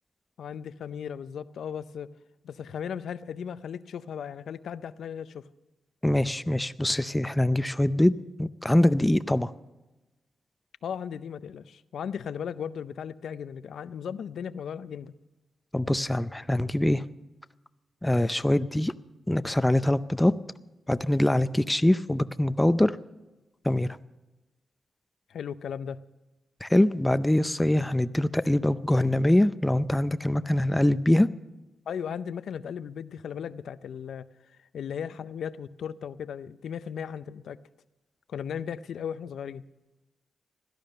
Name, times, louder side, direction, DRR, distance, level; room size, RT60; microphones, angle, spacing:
voice 1, 0.4-2.1 2.4-5.5 10.8-15.1 25.3-26.0 31.9-34.3 34.7-37.6 38.3-39.6, left 8 dB, 85° left, 14 dB, 0.5 m, -36 dB
voice 2, 6.0-8.1 8.4-9.5 15.7-17.0 18.0-18.9 19.3-20.3 20.9-23.0 23.6-23.9 26.6-31.3, left 1 dB, 10° left, 13 dB, 0.5 m, -23 dB
17.0 x 12.0 x 6.6 m, 1.1 s
wide cardioid pair, 110°, 0 cm